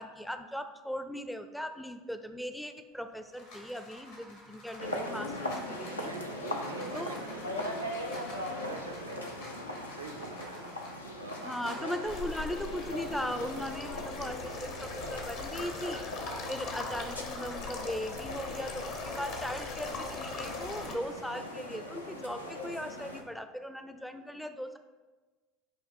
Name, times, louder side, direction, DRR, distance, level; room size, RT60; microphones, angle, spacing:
voice 1, 0.0-6.1 6.9-7.2 11.4-16.0 16.5-24.8, equal, ahead, 8 dB, 0.4 m, -38 dB
sound 1, 2.9-15.9 16.3-21.2, left 1 dB, 70° left, 2.0 m, -51 dB
sound 2, 4.8-23.2, left 1 dB, 90° left, 0.6 m, -40 dB
voice 2, 5.9-8.0 8.6-10.6 11.1-12.3, right 4 dB, 85° right, 4 dB, 0.5 m, -46 dB
sound 3, 12.0-20.9, left 4 dB, 55° left, 1.0 m, -40 dB
8.7 x 3.0 x 5.7 m, 1.3 s
figure-of-eight pair, 70°, 0 cm